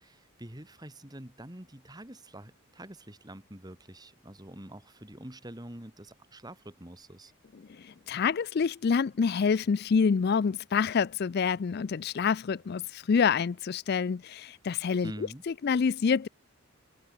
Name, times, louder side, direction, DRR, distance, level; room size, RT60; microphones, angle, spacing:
voice 1, 0.0-7.3 15.0-15.4, right 1 dB, 20° right, 2.0 m, -46 dB
voice 2, 7.7-15.1 15.5-16.3, left 6 dB, 45° left, 0.4 m, -27 dB
head